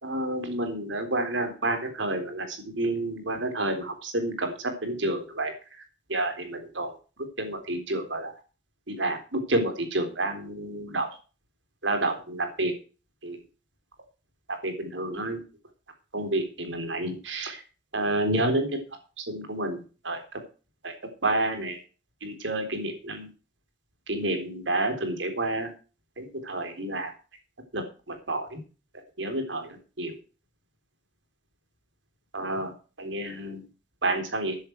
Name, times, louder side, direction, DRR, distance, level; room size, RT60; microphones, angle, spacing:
voice 1, 0.0-5.5 6.1-6.9 7.4-8.3 8.9-11.1 11.8-12.7 13.2-13.4 14.5-15.4 16.1-17.6 17.9-18.7 19.2-20.2 20.8-20.9 21.2-21.8 22.2-23.3 24.1-25.7 26.2-27.1 27.7-28.6 29.2-30.1 32.3-32.7 33.0-33.6 34.0-34.6, right 2 dB, 80° right, 6 dB, 3.9 m, -29 dB
13.0 x 10.5 x 4.6 m, 0.35 s
head